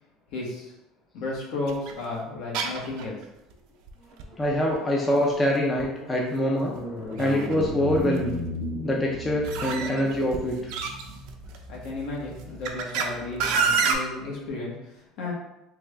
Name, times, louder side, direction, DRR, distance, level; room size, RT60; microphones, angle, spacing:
voice 1, 0.3-0.7 1.1-3.6 11.7-15.3, left 2 dB, 65° left, -3 dB, 1.1 m, -34 dB
sound 1, 1.7-1.9 2.5-3.2 3.5-3.6 3.9-4.0 4.2-4.7 5.8-5.9 6.6-7.7 7.9-8.3 9.4-11.6 12.3-13.0 13.4-13.9, right 5 dB, 70° right, 0.4 m, -27 dB
sound 2, 4.1-13.7, equal, 35° left, 1.2 m, -37 dB
voice 2, 4.4-6.7 7.2-8.4 8.8-10.7, left 1 dB, 15° left, -2 dB, 0.4 m, -25 dB
3.4 x 2.4 x 3.2 m, 0.89 s
cardioid pair, 150°, 0 cm